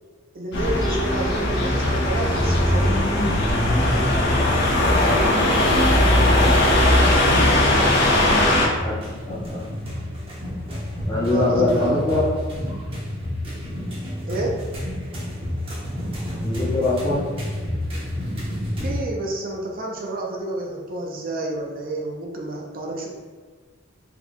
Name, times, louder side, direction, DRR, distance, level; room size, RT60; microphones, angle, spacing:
voice 1, 0.3-3.4 11.1-12.0 14.3-14.6 18.8-23.1, right 2 dB, 45° right, 0 dB, 0.6 m, -29 dB
sound 1, 0.5-8.7, left 1 dB, 55° left, 0.9 m, -18 dB
sound 2, 1.4-19.0, left 1 dB, 25° right, 1.1 m, -31 dB
voice 2, 7.8-9.7 11.1-12.4 16.4-17.2, left 2 dB, 20° left, -12 dB, 0.9 m, -24 dB
4.4 x 3.9 x 2.3 m, 1.5 s
head